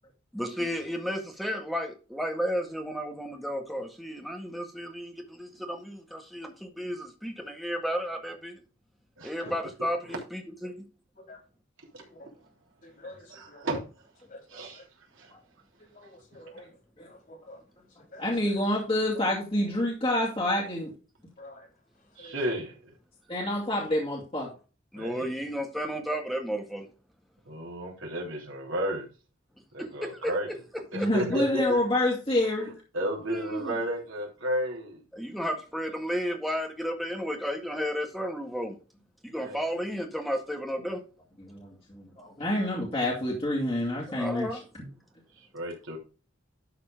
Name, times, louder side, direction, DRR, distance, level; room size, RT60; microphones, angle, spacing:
voice 1, 0.3-8.6 9.2-10.8 24.9-26.9 30.0-30.3 31.0-31.1 31.3-31.7 33.3-33.8 35.1-38.8 39.2-41.0 44.1-44.6, equal, ahead, 1.7 m, -32 dB
voice 2, 12.0-12.3 12.8-13.8 14.3-14.9 15.8-17.6 18.0-18.2 21.4-21.7 21.9-22.4 42.4-42.5, left 1 dB, 45° left, 4.0 m, -49 dB
voice 3, 13.3-13.8 14.5-14.8 15.1-15.3 22.2-22.8 24.9-25.3 27.5-29.1 29.7-30.5 30.9-31.8 32.9-35.0 39.4-39.6 45.4-46.0, equal, 80° right, 3.2 m, -33 dB
voice 4, 18.2-20.9 23.3-24.5 30.9-32.7 40.8-40.9 41.4-44.9, left 1 dB, 30° left, 2.4 m, -28 dB
12.0 x 4.3 x 5.1 m
head